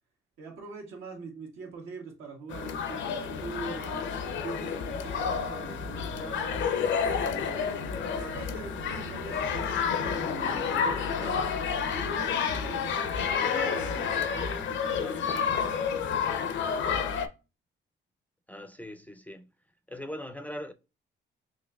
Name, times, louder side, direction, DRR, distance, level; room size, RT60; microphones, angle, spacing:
voice 1, 0.4-6.7 7.3-11.5 11.9-16.3, right 4 dB, 90° right, 1.5 m, -43 dB
sound 1, 2.5-17.3, left 6 dB, 70° left, 0.6 m, -30 dB
sound 2, 5.0-14.3, right 4 dB, 60° right, 0.8 m, -47 dB
voice 2, 18.5-19.5 19.9-20.7, left 1 dB, 10° left, 0.4 m, -40 dB
6.0 x 2.6 x 2.3 m
cardioid pair, 90°, 20 cm